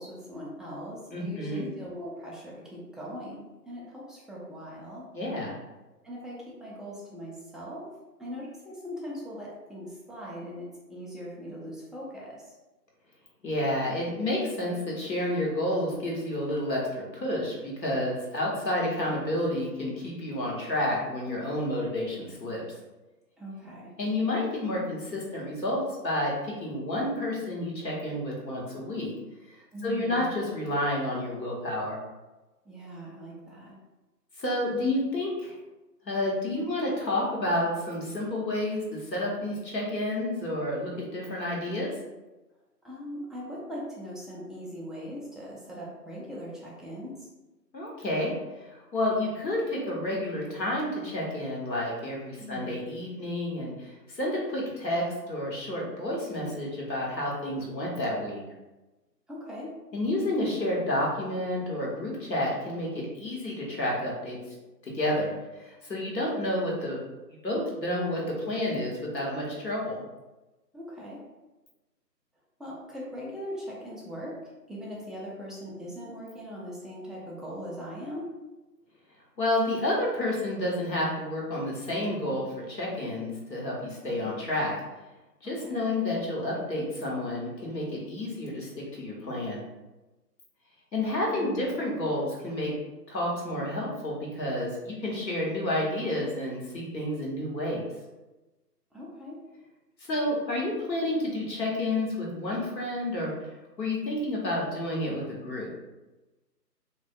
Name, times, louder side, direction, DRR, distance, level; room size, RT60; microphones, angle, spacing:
voice 1, 0.0-5.1 6.0-7.9 8.2-12.5 23.4-24.0 29.7-30.4 32.6-33.8 42.8-47.3 52.4-52.8 59.3-59.7 70.7-71.2 72.6-78.3 84.0-84.4 85.6-85.9 91.4-91.7 98.9-99.4, equal, ahead, -6 dB, 0.4 m, -40 dB
voice 2, 1.1-1.6 5.1-5.6 13.4-22.6 24.0-29.1 29.5-32.0 34.4-35.5 36.0-41.9 47.7-48.3 48.6-58.4 59.9-64.4 64.8-67.0 67.4-70.0 79.4-84.7 85.4-89.6 90.9-92.7 93.1-97.8 100.1-103.3 103.8-105.7, left 1 dB, 80° left, -4 dB, 1.1 m, -30 dB
2.4 x 2.2 x 2.5 m, 1.1 s
figure-of-eight pair, 170°, 50 cm